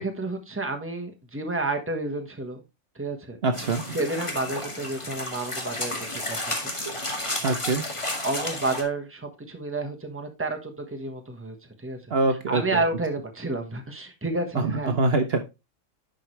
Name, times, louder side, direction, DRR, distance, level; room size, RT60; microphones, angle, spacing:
voice 1, 0.0-2.6 2.9-3.4 3.9-6.4 6.6-6.7 8.2-12.0 12.5-15.0, right 2 dB, 10° right, 5 dB, 1.3 m, -30 dB
voice 2, 3.4-4.0 7.4-7.8 12.1-12.8 14.5-15.4, right 3 dB, 55° right, 7 dB, 1.0 m, -24 dB
sound 1, 3.5-8.8, left 1 dB, 25° left, 1.7 m, -32 dB
10.5 x 5.2 x 3.2 m, 0.25 s
omnidirectional pair, 1.3 m